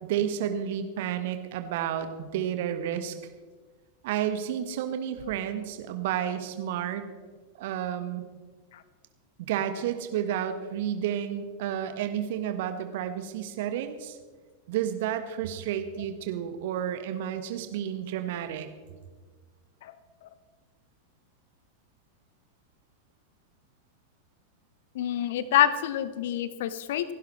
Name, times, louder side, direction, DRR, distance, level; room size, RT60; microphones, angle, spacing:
voice 1, 0.0-3.1 4.0-7.1 7.6-8.2 9.4-14.2 14.7-18.7, right 10 dB, 50° right, 8 dB, 1.4 m, -31 dB
voice 2, 24.9-27.1, left 11 dB, 55° left, 14 dB, 0.9 m, -26 dB
28.5 x 11.5 x 3.2 m, 1.4 s
figure-of-eight pair, 90°, 0 cm